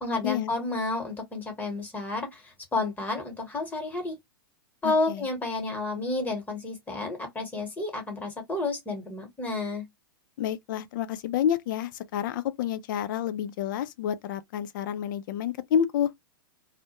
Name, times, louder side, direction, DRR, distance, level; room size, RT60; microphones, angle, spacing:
voice 1, 0.0-4.2 4.8-9.8, left 3 dB, 15° left, 1.0 m, -31 dB
voice 2, 4.8-5.2 10.4-16.1, left 9 dB, 65° left, 0.4 m, -29 dB
2.2 x 2.1 x 2.8 m
hypercardioid pair, 120°, 12 cm